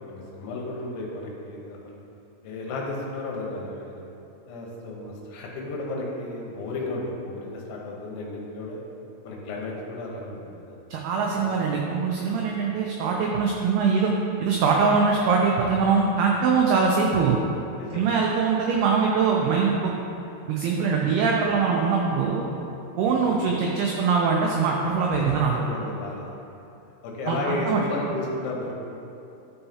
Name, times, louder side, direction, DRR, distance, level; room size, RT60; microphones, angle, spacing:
voice 1, 0.1-2.0 2.4-4.1 4.5-8.8 9.2-10.8 11.3-11.6 12.5-12.7 17.8-18.0 23.3-23.4 25.2-26.4 27.0-28.7, left 2 dB, 80° left, -2 dB, 3.4 m, -33 dB
voice 2, 10.9-14.1 14.4-17.4 17.9-19.9 20.5-22.4 23.0-25.6 27.3-27.8, right 5 dB, 90° right, -1 dB, 2.2 m, -22 dB
13.0 x 5.6 x 2.8 m, 2.8 s
omnidirectional pair, 5.3 m